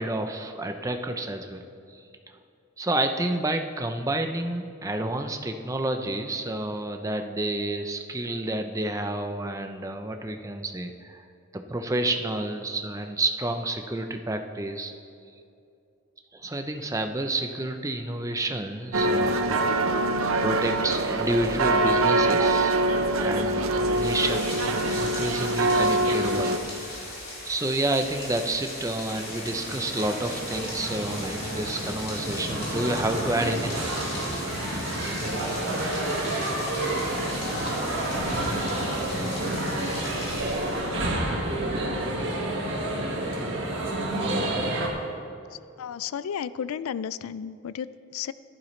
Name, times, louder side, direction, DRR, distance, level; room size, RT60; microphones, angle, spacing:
voice 1, 0.0-1.6 1.9-2.0 2.8-11.2 11.5-14.9 16.3-19.7 20.4-22.9 23.2-27.0 27.5-33.9, right 1 dB, 15° right, 6 dB, 0.5 m, -29 dB
sound 1, 18.9-26.6, right 2 dB, 80° right, 0.8 m, -24 dB
Rain, 23.7-41.1, left 2 dB, 50° left, 3.2 m, -38 dB
sound 2, 29.1-44.9, right 1 dB, 60° right, 1.7 m, -29 dB
voice 2, 45.8-48.3, left 8 dB, 85° left, 16 dB, 0.3 m, -33 dB
14.5 x 11.5 x 3.2 m, 2.5 s
head